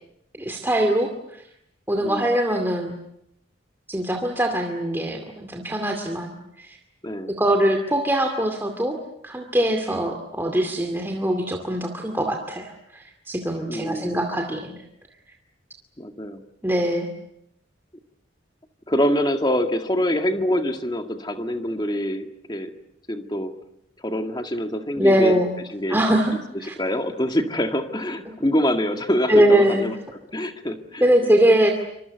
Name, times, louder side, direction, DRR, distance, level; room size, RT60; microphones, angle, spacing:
voice 1, 0.4-1.1 1.9-2.9 3.9-6.8 7.3-9.0 9.2-14.8 16.6-17.1 25.0-25.5 25.9-26.3 26.6-26.7 29.3-29.9 31.0-31.7, right 1 dB, 10° right, 3 dB, 2.4 m, -22 dB
voice 2, 2.0-2.3 7.0-7.3 13.7-14.2 16.0-16.4 18.9-22.7 23.1-23.5 24.0-25.4 25.7-26.0 26.6-30.0 30.3-31.1, equal, 20° left, 6 dB, 2.1 m, -25 dB
27.0 x 25.5 x 8.2 m, 0.78 s
head